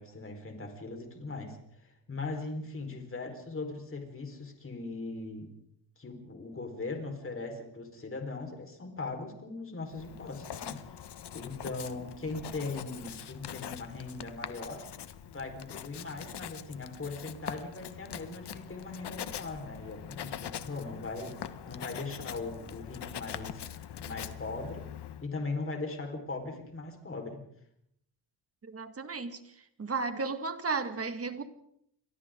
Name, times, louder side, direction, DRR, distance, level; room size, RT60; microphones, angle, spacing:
voice 1, 0.0-5.5 6.0-14.9 15.3-23.6 24.0-24.9 25.2-27.4, left 3 dB, 25° left, 4.7 m, -39 dB
Writing, 9.9-25.3, left 9 dB, 55° left, 1.3 m, -43 dB
voice 2, 28.6-29.4 29.8-31.4, right 4 dB, 30° right, 2.0 m, -34 dB
29.5 x 24.0 x 3.9 m
cardioid pair, 135°, 47 cm